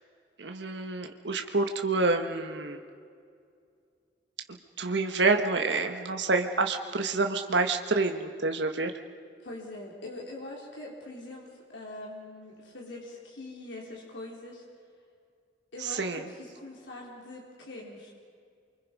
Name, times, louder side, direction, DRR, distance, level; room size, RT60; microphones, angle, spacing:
voice 1, 0.4-2.8 4.8-8.9 15.9-16.2, right 3 dB, 75° right, 5 dB, 1.4 m, -28 dB
voice 2, 9.4-14.6 15.7-18.1, left 2 dB, 85° left, -3 dB, 4.1 m, -43 dB
28.5 x 24.5 x 5.4 m, 2.3 s
head